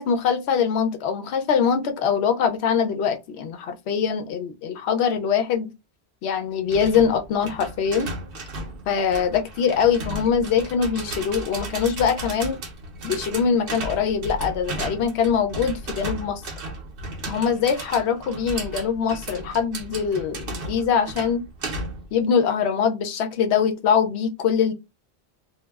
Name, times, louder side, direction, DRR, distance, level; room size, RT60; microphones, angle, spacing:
voice 1, 0.0-5.7 6.2-8.1 8.9-12.6 13.0-16.4 17.3-21.4 22.1-24.7, left 7 dB, 85° left, 0.8 m, -23 dB
sound 1, 6.7-22.1, right 2 dB, 65° right, 0.8 m, -35 dB
2.3 x 2.0 x 3.3 m
omnidirectional pair, 1.1 m